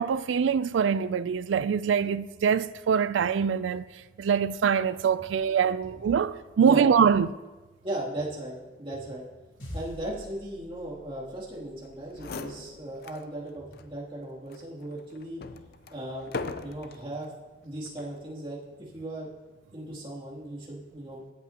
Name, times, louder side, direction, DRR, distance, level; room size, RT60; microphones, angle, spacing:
voice 1, 0.0-3.9 4.2-7.3, right 7 dB, 85° right, 0.4 m, -24 dB
voice 2, 7.8-9.2 9.7-15.4 15.9-16.3 16.6-17.3 17.6-19.3 19.7-21.2, right 1 dB, 30° right, 2.7 m, -37 dB
sound 1, 9.6-14.2, equal, 85° left, 3.7 m, -47 dB
sound 2, 11.8-11.9 12.1-13.3 13.7-13.8 14.5-17.1 17.9-18.2, left 4 dB, 55° left, 0.5 m, -39 dB
16.0 x 8.4 x 2.9 m
head